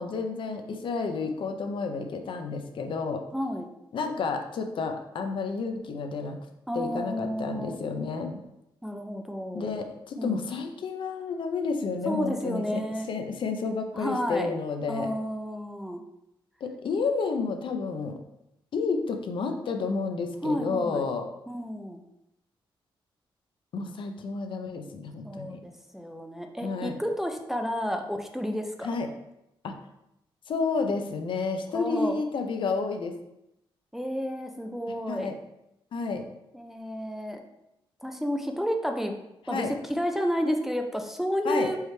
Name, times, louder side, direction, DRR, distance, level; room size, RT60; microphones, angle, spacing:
voice 1, 0.0-3.2 3.9-6.4 6.7-8.4 9.5-12.8 13.1-15.1 16.6-18.2 18.7-21.3 23.7-25.6 26.6-27.0 28.8-29.1 29.6-29.8 30.5-33.1 35.1-35.4 35.9-36.3 39.5-39.7 41.4-41.7, left 4 dB, 65° left, 5 dB, 0.5 m, -30 dB
voice 2, 3.3-3.7 6.7-7.8 8.8-9.8 10.2-10.4 12.1-13.1 13.9-14.5 14.9-16.0 20.4-21.0 21.5-22.0 25.2-28.9 31.7-32.2 33.9-35.4 36.5-37.4 38.0-39.1 39.5-41.8, equal, 5° right, 3 dB, 0.4 m, -31 dB
4.6 x 3.1 x 3.2 m, 0.85 s
cardioid pair, 110°, 9 cm